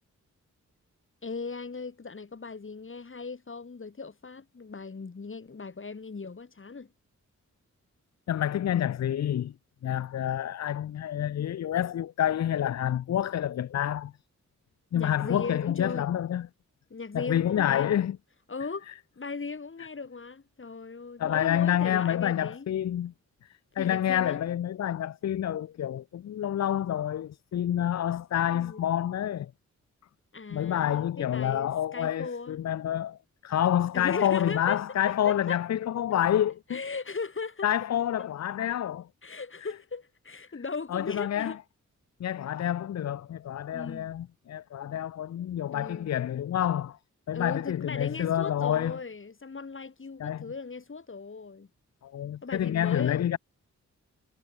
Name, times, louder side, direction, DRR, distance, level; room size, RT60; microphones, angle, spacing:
voice 1, 1.2-6.9 14.9-16.1 16.9-18.1 18.5-18.9 19.2-22.7 23.8-24.4 27.8-27.9 28.5-28.9 30.3-32.6 33.9-35.6 36.7-37.7 39.2-41.6 43.7-44.1 45.7-46.1 47.3-51.7 52.4-53.4, left 4 dB, 40° left, 7.2 m, -38 dB
voice 2, 8.3-9.5 9.8-14.1 14.9-16.5 17.1-18.2 21.2-23.1 23.8-29.5 30.5-36.8 37.6-39.1 40.9-41.5 42.2-47.0 47.3-49.0 50.2-50.4 52.0-53.4, left 10 dB, 60° left, 0.5 m, -28 dB
wide cardioid pair, 155°, 30 cm